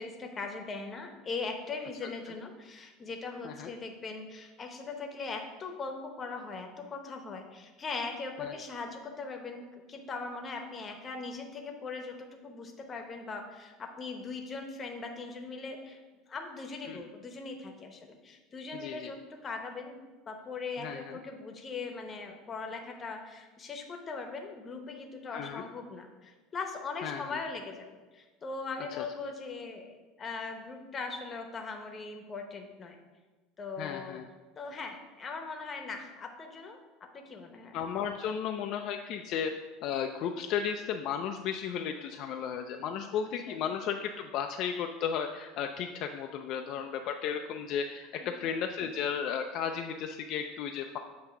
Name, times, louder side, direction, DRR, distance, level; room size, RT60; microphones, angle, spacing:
voice 1, 0.0-16.0 16.3-20.0 20.3-27.9 28.1-33.0 33.6-34.2 34.6-36.8 37.1-37.8 43.5-43.6 48.1-48.4, left 4 dB, 25° left, 3 dB, 0.8 m, -40 dB
voice 2, 18.7-19.1 20.8-21.2 25.3-25.6 27.0-27.2 28.9-29.0 33.8-34.3 37.7-39.5 39.8-51.0, left 7 dB, 55° left, 4 dB, 0.3 m, -34 dB
7.7 x 2.8 x 5.8 m, 1.3 s
cardioid pair, 140°, 0 cm